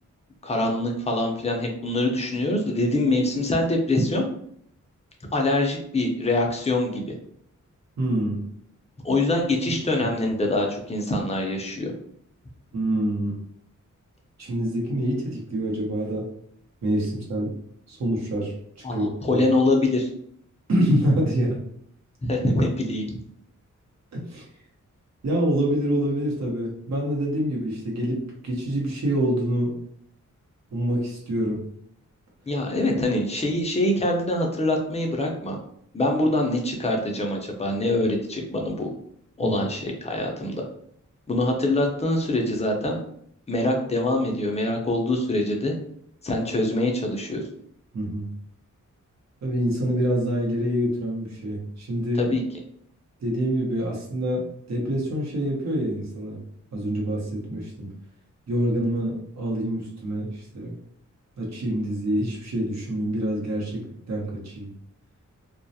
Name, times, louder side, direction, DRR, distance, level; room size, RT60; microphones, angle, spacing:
voice 1, 0.4-4.2 5.3-7.1 9.0-11.9 18.8-20.1 22.2-23.2 32.5-35.6 35.9-38.9 39.4-40.6 41.3-43.0 43.5-45.7 46.2-47.4 52.2-52.4, left 1 dB, 20° left, 1 dB, 0.5 m, -24 dB
voice 2, 8.0-8.4 9.7-9.8 12.7-13.4 14.4-16.3 16.8-17.5 17.9-18.5 18.9-19.4 20.7-21.6 24.1-24.4 25.2-29.7 30.7-31.6 39.4-39.6 47.9-48.3 49.4-52.3 53.2-56.4 56.7-57.9 58.5-60.8 61.4-63.8 64.1-64.7, right 1 dB, 60° right, -2 dB, 0.8 m, -26 dB
2.3 x 2.0 x 2.6 m, 0.67 s
wide cardioid pair, 110°, 31 cm